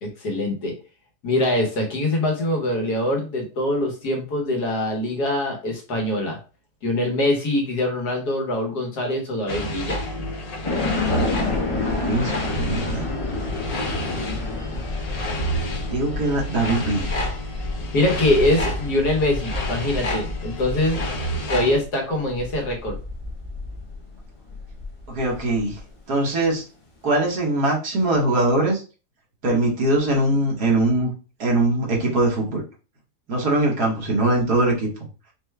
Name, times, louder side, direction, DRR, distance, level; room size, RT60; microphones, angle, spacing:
voice 1, 0.0-0.7 1.2-6.4 6.8-10.0 17.9-21.0 21.5-23.0, left 1 dB, 80° left, 1 dB, 1.7 m, -23 dB
sound 1, 9.5-21.8, equal, 65° left, 0.4 m, -30 dB
sound 2, 10.6-25.8, left 3 dB, 30° left, 0.6 m, -30 dB
voice 2, 11.7-13.1 15.9-17.2 25.1-25.8 26.1-26.6 27.0-28.8 29.4-31.1 31.4-32.6 33.3-34.9, right 2 dB, 75° right, -2 dB, 1.9 m, -22 dB
5.2 x 2.3 x 3.2 m, 0.33 s
omnidirectional pair, 1.7 m